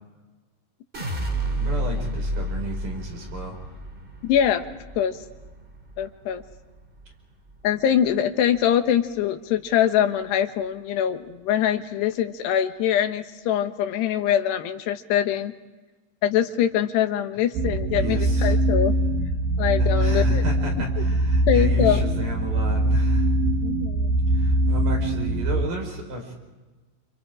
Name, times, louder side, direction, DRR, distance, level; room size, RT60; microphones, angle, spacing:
sound 1, 0.9-7.1 7.5-8.1, right 1 dB, 15° right, 2.1 m, -31 dB
voice 1, 1.6-3.8 17.9-18.6 19.8-23.3 24.3-26.3, right 1 dB, 50° right, 2 dB, 6.4 m, -33 dB
voice 2, 4.2-4.7 5.0-5.2 6.0-6.4 7.6-15.5 16.2-18.9 19.6-20.4 21.5-22.0 23.6-24.2, left 10 dB, 80° left, 7 dB, 3.4 m, -23 dB
sound 2, 17.5-25.7, right 1 dB, 85° right, 3.9 m, -22 dB
28.5 x 28.5 x 5.0 m, 1.2 s
omnidirectional pair, 4.8 m